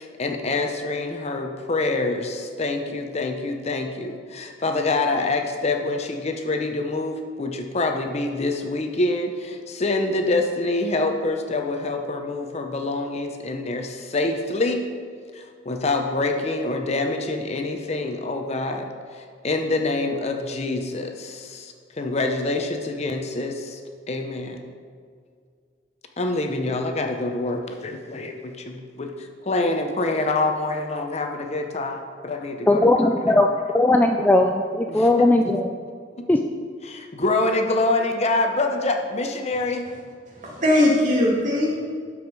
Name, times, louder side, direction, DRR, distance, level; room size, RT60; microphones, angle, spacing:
voice 1, 0.0-14.9 15.3-23.8 24.1-24.7 26.2-33.4 34.9-35.6 36.8-39.9, left 2 dB, 35° left, 4 dB, 0.7 m, -26 dB
voice 2, 32.7-33.5 33.7-35.7 36.3-36.4, left 2 dB, 10° left, 4 dB, 0.3 m, -18 dB
voice 3, 40.3-41.8, left 1 dB, 45° right, -3 dB, 2.1 m, -20 dB
12.5 x 4.9 x 4.7 m, 2.1 s
head